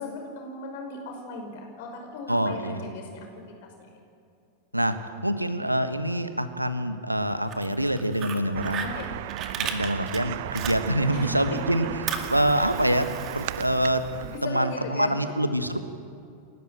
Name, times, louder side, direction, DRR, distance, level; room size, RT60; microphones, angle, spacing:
voice 1, 0.0-3.9 8.8-9.2 11.1-11.6 12.5-12.8 14.1-15.4, left 3 dB, 55° left, 3 dB, 5.5 m, -37 dB
voice 2, 2.3-2.8 4.7-5.0 5.2-8.9 9.6-11.8 12.3-13.1 13.3-14.0 14.4-15.8, right 1 dB, 85° right, 10 dB, 1.4 m, -25 dB
Fire, 7.3-11.3 11.6-14.4, right 7 dB, 30° right, 2.1 m, -36 dB
sound 1, 8.5-14.4, right 15 dB, 50° right, 0.5 m, -35 dB
29.5 x 12.5 x 9.1 m, 2.5 s
figure-of-eight pair, 90°, 0 cm